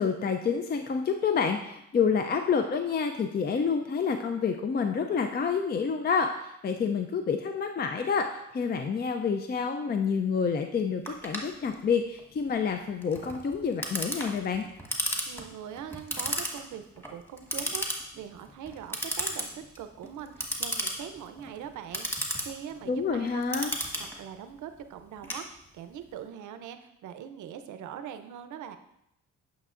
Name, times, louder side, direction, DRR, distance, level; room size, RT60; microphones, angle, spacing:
voice 1, 0.0-14.6 22.9-23.7, left 6 dB, 30° left, 6 dB, 0.5 m, -28 dB
Clock, 11.1-26.0, equal, 5° left, 1.3 m, -35 dB
voice 2, 15.3-23.4 24.0-28.8, right 9 dB, 75° right, 8 dB, 0.7 m, -42 dB
9.2 x 5.9 x 2.5 m, 0.81 s
cardioid pair, 90°, 30 cm